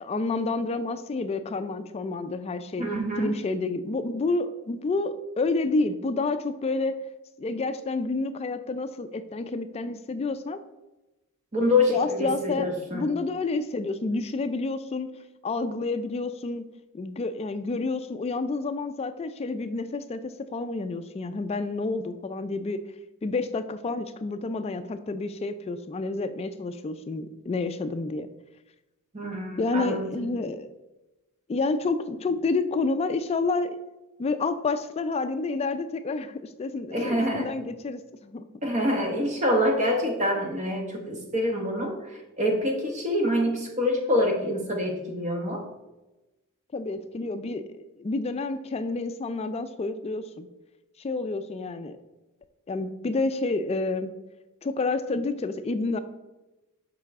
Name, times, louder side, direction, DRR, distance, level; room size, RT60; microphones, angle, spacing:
voice 1, 0.0-2.9 3.2-7.0 7.4-10.6 11.9-12.7 12.9-15.1 15.4-16.6 16.9-22.8 23.2-28.3 29.6-30.7 31.5-33.8 34.2-38.4 46.7-50.5 51.0-52.0 52.7-54.1 54.6-56.0, left 3 dB, 30° left, 11 dB, 0.3 m, -29 dB
voice 2, 2.8-3.3 11.5-13.1 29.1-30.1 36.9-37.5 38.6-45.7, left 1 dB, 30° right, 2 dB, 1.0 m, -26 dB
6.8 x 5.5 x 3.5 m, 1.0 s
head